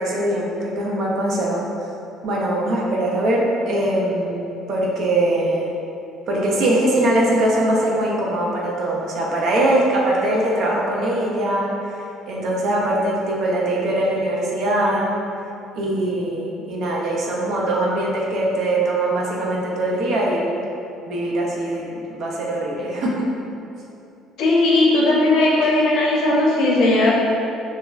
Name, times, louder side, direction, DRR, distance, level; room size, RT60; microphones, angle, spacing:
voice 1, 0.0-1.6 2.2-5.7 6.3-15.1 15.8-20.5 21.1-23.2, right 1 dB, 60° right, -2 dB, 0.4 m, -22 dB
voice 2, 24.4-27.1, left 2 dB, 65° left, -4 dB, 0.5 m, -17 dB
3.2 x 2.1 x 2.3 m, 2.7 s
cardioid pair, 125°, 0 cm